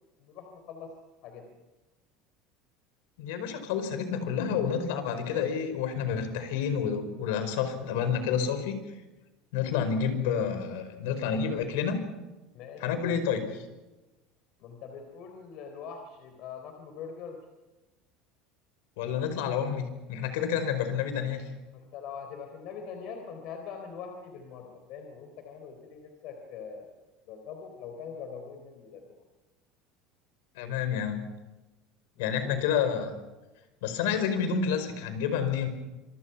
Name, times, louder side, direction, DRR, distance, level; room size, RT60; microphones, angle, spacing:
voice 1, 0.2-0.9 1.2-1.4 12.5-12.9 14.6-17.4 21.7-29.2 32.2-32.6, left 6 dB, 45° left, 4 dB, 3.8 m, -43 dB
voice 2, 3.2-8.8 9.5-12.0 12.8-13.6 19.0-21.4 30.6-31.3 32.2-33.1 33.8-35.7, left 7 dB, 80° left, 9 dB, 4.9 m, -29 dB
27.0 x 24.5 x 5.8 m, 1.1 s
cardioid pair, 170°, 0 cm